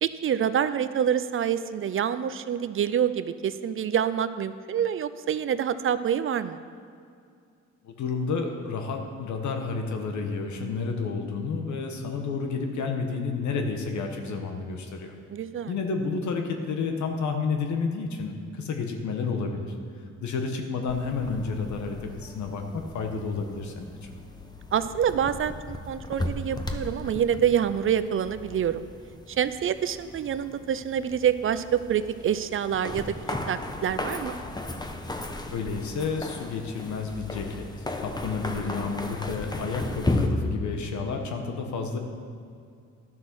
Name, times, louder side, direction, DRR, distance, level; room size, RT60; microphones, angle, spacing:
voice 1, 0.0-6.6 15.3-15.7 24.7-28.8 29.4-33.1 33.5-34.4, right 9 dB, 45° right, 13 dB, 0.5 m, -26 dB
voice 2, 7.8-15.1 15.7-19.7 20.2-24.1 35.5-37.6 38.0-42.0, left 4 dB, 70° left, 4 dB, 1.3 m, -30 dB
sound 1, 20.9-40.3, left 2 dB, 15° left, 0.9 m, -36 dB
12.0 x 6.2 x 6.2 m, 2.4 s
cardioid pair, 90°, 30 cm